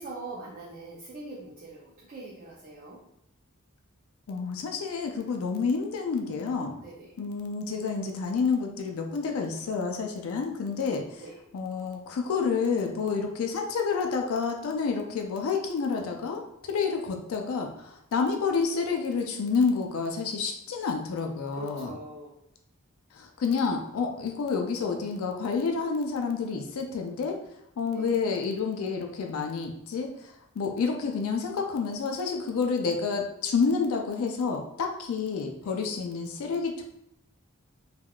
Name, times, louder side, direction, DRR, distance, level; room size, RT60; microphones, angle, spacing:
voice 1, 0.0-3.0 6.8-7.1 11.2-11.4 21.5-22.3 27.9-28.2 35.6-36.0, right 2 dB, 40° right, -6 dB, 0.5 m, -42 dB
voice 2, 4.3-6.7 7.2-11.2 11.5-21.9 23.1-27.4 27.8-36.8, left 5 dB, 70° left, 3 dB, 0.4 m, -29 dB
3.4 x 2.2 x 2.3 m, 0.79 s
head